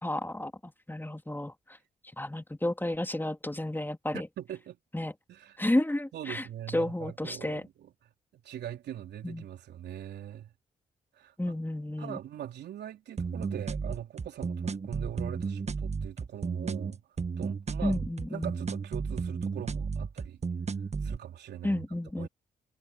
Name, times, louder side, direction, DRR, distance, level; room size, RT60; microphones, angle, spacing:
voice 1, 0.0-1.5 2.2-4.3 4.9-5.1 5.6-6.5 6.7-7.6 9.2-9.4 11.4-12.2 17.8-18.5 21.6-22.3, left 1 dB, 10° left, 3.2 m, -31 dB
voice 2, 4.4-4.8 5.3-5.6 6.1-7.9 8.3-10.5 11.1-11.5 12.0-17.0 17.4-18.0 18.3-20.4 21.0-21.8 22.2-22.3, right 11 dB, 70° right, 3.4 m, -41 dB
sound 1, 13.2-21.2, right 5 dB, 40° right, 1.5 m, -33 dB
hypercardioid pair, 40°, 18 cm